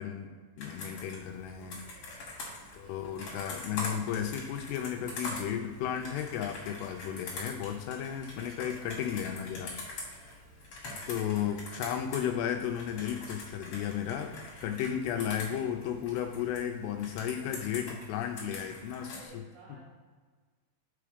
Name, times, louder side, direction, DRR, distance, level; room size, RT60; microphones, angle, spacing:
voice 1, 0.0-1.8 2.7-9.7 11.1-14.3 14.6-19.4, left 9 dB, 80° left, 4 dB, 2.5 m, -34 dB
Computer keyboard, 0.6-12.3 12.6-16.6 17.0-19.2, left 2 dB, 45° left, 2.2 m, -43 dB
sound 1, 1.1-16.6, equal, 65° right, 2.1 m, -58 dB
voice 2, 1.6-2.1 2.6-3.1 11.0-11.5 18.9-19.9, right 1 dB, 85° right, -8 dB, 4.2 m, -56 dB
6.9 x 4.8 x 5.0 m, 1.5 s
omnidirectional pair, 4.8 m